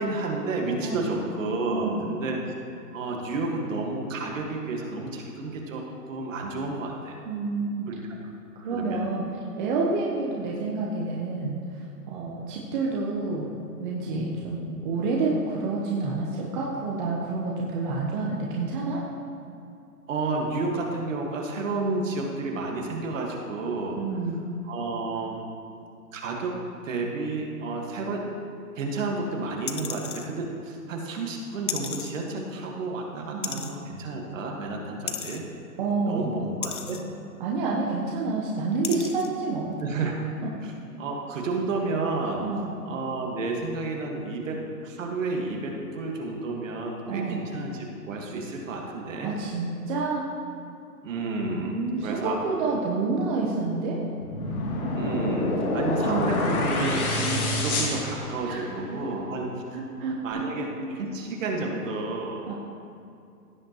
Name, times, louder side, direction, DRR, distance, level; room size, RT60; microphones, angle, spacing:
voice 1, 0.0-2.4 2.9-7.2 7.9-8.2 8.7-9.1 20.1-24.0 24.7-25.4 26.1-26.6 26.8-28.3 28.8-35.4 36.1-37.1 39.8-40.2 40.6-40.7 41.0-42.4 42.8-49.3 51.0-51.8 52.0-52.4 54.9-59.5 60.2-62.5, right 3 dB, 55° right, 1 dB, 1.8 m, -31 dB
voice 2, 0.8-1.1 1.6-2.2 7.3-7.9 8.6-9.3 9.6-11.6 12.1-19.0 24.0-24.4 33.3-33.7 35.8-36.4 37.4-39.8 40.4-40.5 42.4-42.7 47.1-47.4 49.2-50.2 51.6-54.0 58.5-58.6 58.9-59.0 59.7-60.4 62.5-62.6, right 3 dB, 30° right, -3 dB, 1.1 m, -28 dB
sound 1, 29.7-30.3 31.7-32.1 33.4-33.8 35.1-35.4 36.6-37.0 38.1-38.2 38.8-39.3 39.8-39.9, left 8 dB, 35° left, 0.5 m, -33 dB
sound 2, 54.2-58.8, left 1 dB, 60° left, 2.6 m, -27 dB
16.0 x 7.7 x 3.1 m, 2.6 s
hypercardioid pair, 140°, 47 cm